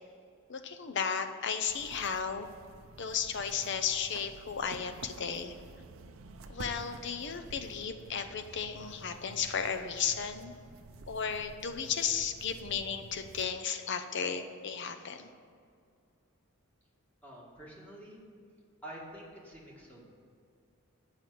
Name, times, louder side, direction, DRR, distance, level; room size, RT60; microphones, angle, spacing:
voice 1, 0.5-2.5 3.0-5.5 6.5-10.5 11.1-15.3, left 6 dB, 55° left, 8 dB, 0.6 m, -34 dB
sound 1, 1.7-13.4, right 3 dB, 70° right, 0.5 m, -50 dB
voice 2, 17.2-18.2 18.8-20.1, right 1 dB, 10° left, -4 dB, 1.7 m, -48 dB
7.4 x 5.7 x 7.6 m, 2.3 s
head